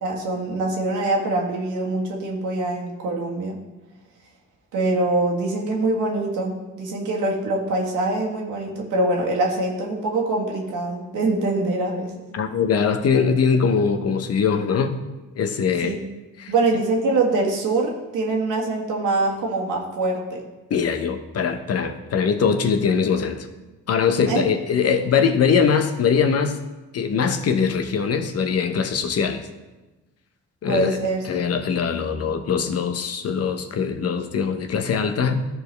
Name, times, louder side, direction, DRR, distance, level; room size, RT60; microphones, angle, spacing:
voice 1, 0.0-3.6 4.7-12.1 15.8-16.0 16.5-20.4 24.2-24.4 30.7-31.2, right 2 dB, 85° right, -1 dB, 1.7 m, -24 dB
voice 2, 12.3-15.0 15.4-16.0 16.4-16.5 20.7-23.5 23.9-26.6 26.9-29.5 30.6-31.0 31.3-35.5, left 6 dB, 55° left, 7 dB, 0.8 m, -22 dB
13.5 x 4.6 x 3.3 m, 1.1 s
cardioid pair, 90°, 30 cm